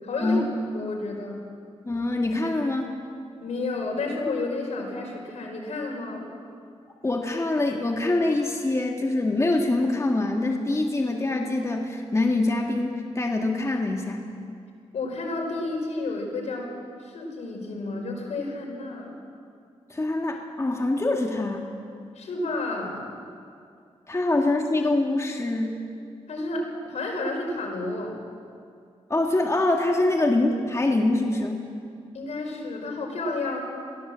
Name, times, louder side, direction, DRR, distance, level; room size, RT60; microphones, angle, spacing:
voice 1, 0.0-0.4 0.7-1.4 3.4-6.3 14.9-16.7 17.0-19.2 22.1-23.0 26.3-28.1 32.1-33.6, left 2 dB, 80° left, 0 dB, 4.8 m, -31 dB
voice 2, 1.9-2.9 7.0-14.2 19.9-21.7 24.1-25.8 29.1-31.6, left 2 dB, 25° left, 1 dB, 1.9 m, -24 dB
22.5 x 15.5 x 7.6 m, 2.3 s
cardioid pair, 80°, 11 cm